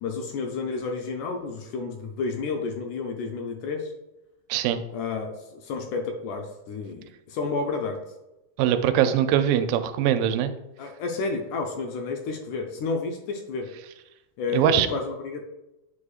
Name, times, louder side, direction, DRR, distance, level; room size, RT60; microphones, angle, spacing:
voice 1, 0.0-3.9 4.9-8.0 10.8-13.7 14.4-15.5, left 4 dB, 75° left, 3 dB, 1.9 m, -31 dB
voice 2, 4.5-4.8 8.6-10.5 14.5-14.9, right 10 dB, 85° right, 9 dB, 2.2 m, -22 dB
8.3 x 4.9 x 2.4 m, 0.94 s
omnidirectional pair, 3.9 m